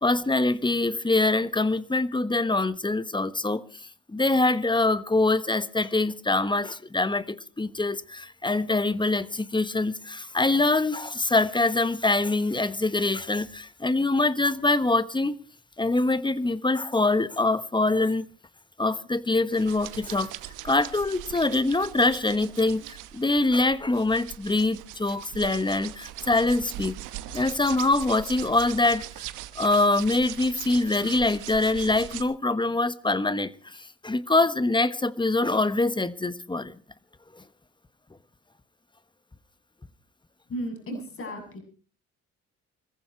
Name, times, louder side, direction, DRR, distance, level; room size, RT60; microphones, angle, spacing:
voice 1, 0.0-3.6 4.1-15.3 15.8-18.2 18.8-20.3 20.6-27.0 27.3-29.1 29.5-36.7 37.4-37.5, left 2 dB, 15° left, 1.2 m, -24 dB
sound 1, 19.5-32.2, right 14 dB, 80° right, 1.1 m, -40 dB
voice 2, 40.5-41.6, equal, 45° left, 7.2 m, -34 dB
21.0 x 14.5 x 4.5 m
supercardioid pair, 65°, 30 cm